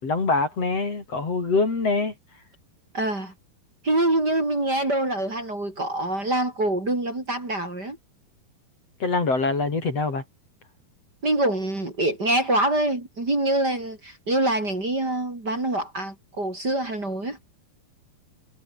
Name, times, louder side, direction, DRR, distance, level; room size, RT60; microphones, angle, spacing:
voice 1, 0.0-2.1 9.0-10.2, left 3 dB, 40° left, 5.2 m, -24 dB
voice 2, 2.9-3.3 3.8-8.0 11.2-17.4, right 1 dB, 25° right, 5.2 m, -25 dB
omnidirectional pair, 4.3 m